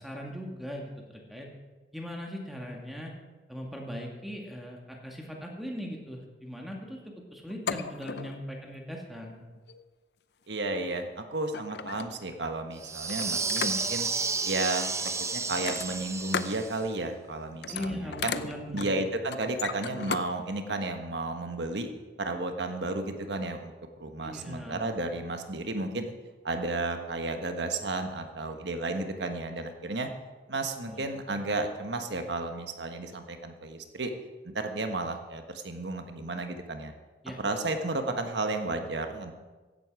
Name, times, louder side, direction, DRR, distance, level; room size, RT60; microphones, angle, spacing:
voice 1, 0.0-1.5 1.9-3.1 3.5-9.4 17.7-19.0 24.2-25.0 30.8-31.1 37.2-37.4, equal, ahead, 0 dB, 2.1 m, -39 dB
sound 1, 7.5-8.5 9.6-9.8 11.0-11.1 11.4-12.4 13.1-14.1 15.5-16.6 16.9-17.3 17.5-20.3 20.7-20.8, left 6 dB, 65° left, 0.6 m, -36 dB
voice 2, 10.5-14.1 14.4-14.9 15.3-18.4 18.7-21.9 22.2-23.7 24.0-26.1 26.4-30.1 30.5-34.1 34.4-36.9 37.4-39.3, right 2 dB, 80° right, 6 dB, 1.4 m, -33 dB
sound 2, 12.8-16.8, right 4 dB, 15° right, 0.6 m, -31 dB
16.0 x 11.0 x 4.9 m, 1.3 s
head